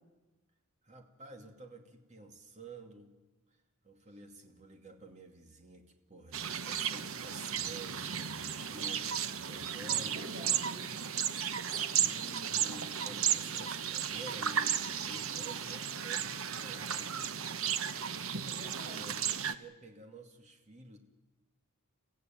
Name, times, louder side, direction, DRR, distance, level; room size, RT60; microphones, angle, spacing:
voice 1, 0.8-3.2 3.5-3.6 3.8-10.3 12.0-17.3 18.8-21.0, right 2 dB, 30° right, 4 dB, 2.6 m, -51 dB
sound 1, 6.3-19.5, right 8 dB, 65° right, 1.0 m, -34 dB
voice 2, 9.4-10.9 18.3-19.2, equal, 50° right, 0 dB, 7.2 m, -50 dB
29.5 x 15.0 x 9.3 m, 1.1 s
head